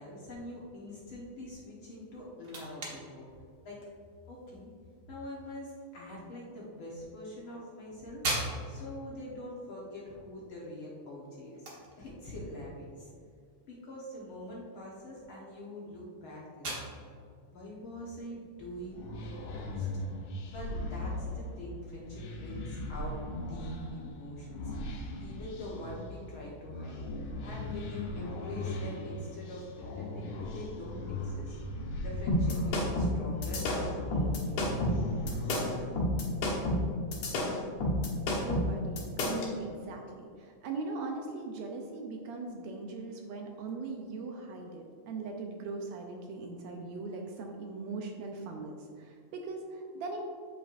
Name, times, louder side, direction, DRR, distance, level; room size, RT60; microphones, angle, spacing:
voice 1, 0.0-3.3 3.6-3.8 4.3-4.7 5.1-11.7 12.0-13.1 13.7-16.8 17.5-19.9 20.5-24.7 25.2-27.0 27.4-31.6 32.0-34.9, left 1 dB, 55° left, -5 dB, 1.6 m, -44 dB
sound 1, 1.9-19.5, right 2 dB, 45° right, 1.5 m, -44 dB
sound 2, 18.6-36.0, left 1 dB, 90° left, 2.6 m, -39 dB
sound 3, 32.3-39.5, left 1 dB, 75° left, 2.7 m, -29 dB
voice 2, 38.3-50.3, right 3 dB, 75° right, 2 dB, 1.8 m, -40 dB
8.6 x 8.2 x 2.5 m, 2.2 s
omnidirectional pair, 3.5 m